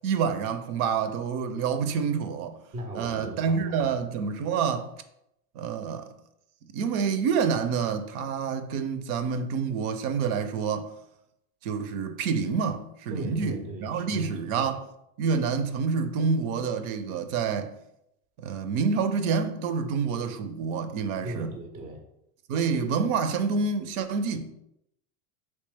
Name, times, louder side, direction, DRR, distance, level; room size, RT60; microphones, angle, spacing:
voice 1, 0.0-2.6 2.9-4.9 5.6-6.1 6.7-10.9 11.6-14.8 15.2-17.7 18.4-21.5 22.5-24.5, right 5 dB, 65° right, 0.6 m, -28 dB
voice 2, 2.7-3.9 13.1-14.7 21.2-22.1, right 1 dB, 15° right, 0.3 m, -38 dB
3.2 x 2.9 x 3.3 m
supercardioid pair, 110°, 47 cm